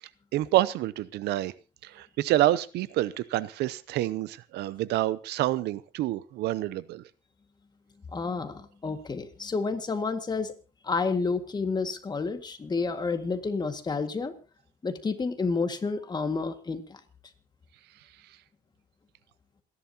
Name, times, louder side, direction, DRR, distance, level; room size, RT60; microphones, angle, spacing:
voice 1, 0.3-1.5 1.8-7.0, right 14 dB, 80° right, 0.7 m, -27 dB
voice 2, 8.1-10.5 10.8-14.3 14.8-17.0, left 4 dB, 25° left, 1.9 m, -30 dB
27.5 x 11.0 x 2.9 m
cardioid pair, 110°, 17 cm